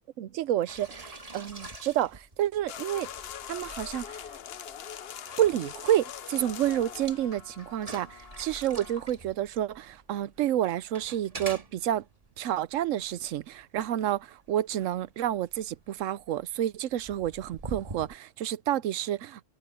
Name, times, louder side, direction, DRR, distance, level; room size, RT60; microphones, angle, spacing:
voice 1, 0.2-3.1 3.5-4.2 5.4-12.0 12.4-19.4, right 12 dB, 80° right, 1.0 m, -29 dB
sound 1, 0.7-18.2, right 2 dB, 30° right, 2.0 m, -46 dB
sound 2, 2.7-9.0, left 8 dB, 55° left, 0.9 m, -42 dB
omnidirectional pair, 1.3 m